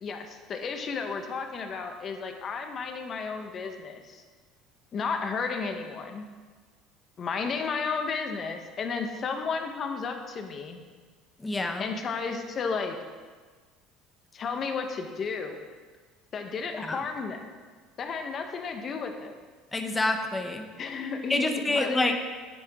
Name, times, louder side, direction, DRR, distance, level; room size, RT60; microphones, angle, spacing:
voice 1, 0.0-4.2 4.9-6.3 7.2-10.8 11.8-13.0 14.3-15.6 16.3-17.4 18.0-19.3 20.8-22.1, left 5 dB, 40° left, 5 dB, 1.1 m, -33 dB
voice 2, 11.4-11.9 16.9-17.0 19.7-20.7 21.3-22.1, left 2 dB, 15° left, 5 dB, 1.0 m, -27 dB
9.9 x 9.7 x 3.7 m, 1.5 s
cardioid pair, 120°, 0 cm